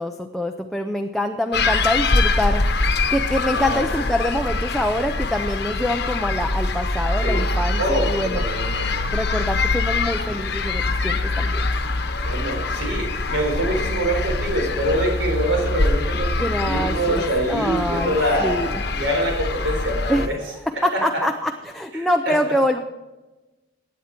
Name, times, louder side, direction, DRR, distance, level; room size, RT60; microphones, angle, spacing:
voice 1, 0.0-8.4 9.1-11.7 16.4-18.8 20.1-22.8, left 1 dB, ahead, 3 dB, 0.5 m, -25 dB
sound 1, 1.5-20.3, left 3 dB, 55° left, 1.0 m, -24 dB
voice 2, 3.5-3.9 7.2-7.5 7.8-8.9 12.2-20.4 20.9-21.2 22.0-22.4, right 1 dB, 80° right, 1 dB, 4.1 m, -25 dB
16.0 x 9.5 x 4.4 m, 1.1 s
head